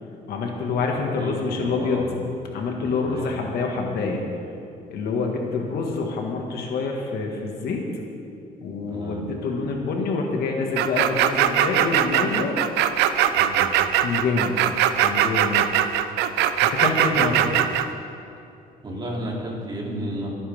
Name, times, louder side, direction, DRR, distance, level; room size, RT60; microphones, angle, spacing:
voice 1, 0.3-2.1 2.5-4.2 4.9-7.8 8.6-12.6 14.0-14.5 15.0-15.7 16.6-17.6, left 4 dB, 65° left, 1 dB, 2.0 m, -26 dB
voice 2, 1.2-2.1 2.8-3.3 8.9-9.2 13.3-13.7 17.1-17.4 18.8-20.3, right 1 dB, 25° right, -3 dB, 3.2 m, -32 dB
sound 1, 10.8-17.9, right 11 dB, 90° right, 0.6 m, -20 dB
24.0 x 9.6 x 3.7 m, 2.6 s
cardioid pair, 110°, 17 cm